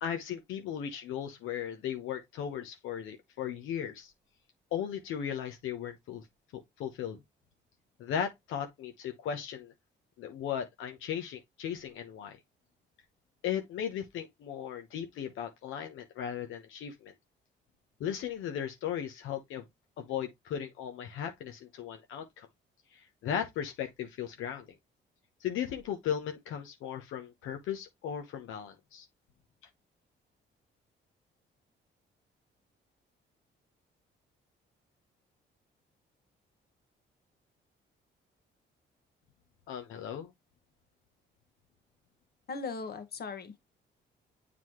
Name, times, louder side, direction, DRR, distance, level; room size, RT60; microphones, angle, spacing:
voice 1, 0.0-4.1 4.7-6.2 6.5-7.2 8.0-9.7 10.2-12.4 13.4-17.1 18.0-19.6 20.0-22.5 23.2-24.7 25.4-29.1 39.7-40.3, left 9 dB, 85° left, 1.0 m, -36 dB
voice 2, 42.5-43.6, left 4 dB, 55° left, 1.4 m, -38 dB
7.5 x 4.1 x 3.1 m
cardioid pair, 90°, 20 cm